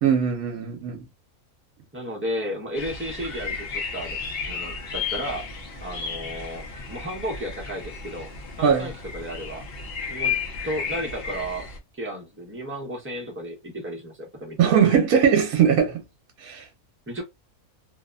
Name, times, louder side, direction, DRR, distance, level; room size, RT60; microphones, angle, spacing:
voice 1, 0.0-1.0 8.6-8.9 14.6-16.0 16.4-16.6, right 7 dB, 70° right, 1.1 m, -20 dB
voice 2, 1.9-4.2 4.5-5.5 5.8-8.3 8.6-9.6 10.1-14.6 17.1-17.2, equal, 15° right, 0.4 m, -33 dB
sound 1, 2.7-11.8, left 5 dB, 55° left, 0.7 m, -33 dB
2.8 x 2.1 x 2.3 m
omnidirectional pair, 1.6 m